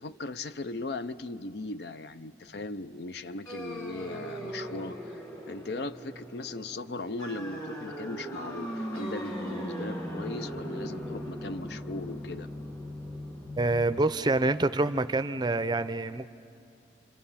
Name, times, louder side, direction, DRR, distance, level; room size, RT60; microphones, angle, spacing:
voice 1, 0.0-5.2 5.5-12.5, left 2 dB, 65° left, 13 dB, 0.6 m, -38 dB
sound 1, 3.5-14.0, equal, 20° left, 2.0 m, -38 dB
voice 2, 13.6-16.3, right 2 dB, 25° right, 12 dB, 0.5 m, -26 dB
29.0 x 25.5 x 5.7 m, 2.6 s
head